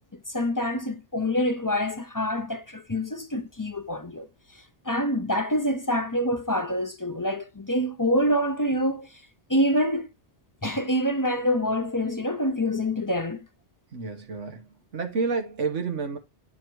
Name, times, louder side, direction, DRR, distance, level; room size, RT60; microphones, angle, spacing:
voice 1, 0.1-4.3 4.9-9.1 9.5-10.1 10.6-13.4, equal, 25° left, 0.5 m, -26 dB
voice 2, 13.9-16.2, right 4 dB, 90° right, 1.7 m, -30 dB
9.4 x 3.7 x 4.6 m
omnidirectional pair, 1.2 m